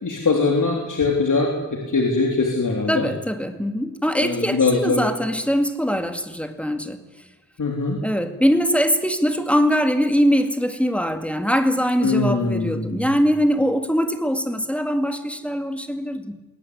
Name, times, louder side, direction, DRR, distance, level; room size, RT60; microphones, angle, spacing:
voice 1, 0.0-3.1 4.2-5.1 7.6-8.0 12.0-13.1, left 3 dB, 60° left, 0 dB, 3.4 m, -22 dB
voice 2, 2.9-7.0 8.0-16.4, equal, 5° left, 7 dB, 2.1 m, -22 dB
21.5 x 17.5 x 9.8 m, 1.1 s
wide cardioid pair, 90°, 34 cm